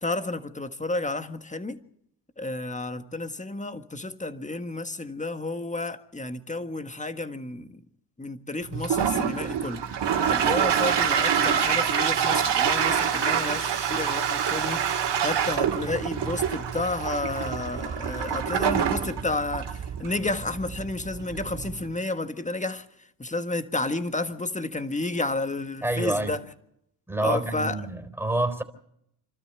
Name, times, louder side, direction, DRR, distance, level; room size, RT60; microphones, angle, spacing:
voice 1, 0.0-1.8 2.4-7.8 8.2-9.8 10.3-22.9 23.2-26.5 27.2-27.8, left 2 dB, 15° left, 1.6 m, -31 dB
Toilet flush, 8.7-21.9, right 8 dB, 75° right, 2.4 m, -26 dB
voice 2, 25.8-26.4 27.1-28.6, right 2 dB, 5° right, 4.0 m, -27 dB
28.5 x 13.0 x 8.0 m
cardioid pair, 70°, 41 cm